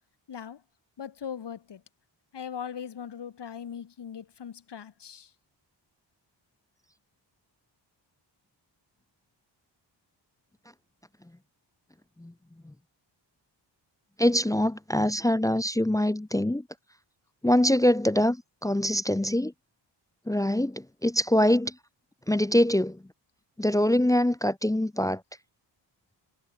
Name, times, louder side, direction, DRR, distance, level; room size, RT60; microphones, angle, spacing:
voice 1, 0.3-0.6 1.0-1.8 2.3-5.3, left 8 dB, 65° left, 6.6 m, -39 dB
voice 2, 14.2-16.7 17.4-19.5 20.3-21.8 22.3-23.0 23.6-25.2, left 1 dB, 5° left, 0.7 m, -24 dB
wide cardioid pair, 170°, 45 cm